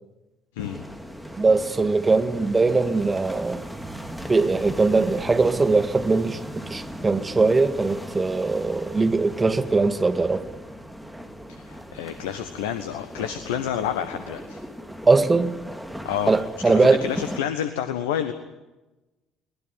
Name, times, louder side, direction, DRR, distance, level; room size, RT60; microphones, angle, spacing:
sound 1, 0.6-17.4, equal, ahead, 2.9 m, -38 dB
voice 1, 1.4-3.6 4.3-6.4 6.7-10.4 15.1-15.5 16.3-17.0, right 3 dB, 20° right, 1.8 m, -21 dB
voice 2, 11.6-14.6 16.0-16.3 16.7-18.3, left 9 dB, 70° left, 1.3 m, -29 dB
21.5 x 20.0 x 9.8 m
figure-of-eight pair, 50°, 0 cm